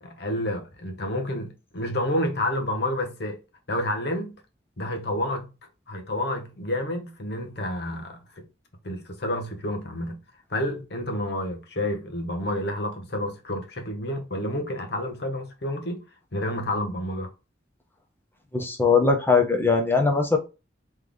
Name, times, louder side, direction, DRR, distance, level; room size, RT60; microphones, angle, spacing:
voice 1, 0.0-3.4 3.7-4.4 4.8-5.5 5.9-8.4 8.8-10.2 10.5-16.0 16.3-17.3, left 1 dB, 60° left, 1.1 m, -29 dB
voice 2, 18.5-20.4, left 4 dB, 10° left, 0.9 m, -20 dB
3.7 x 3.3 x 3.6 m
head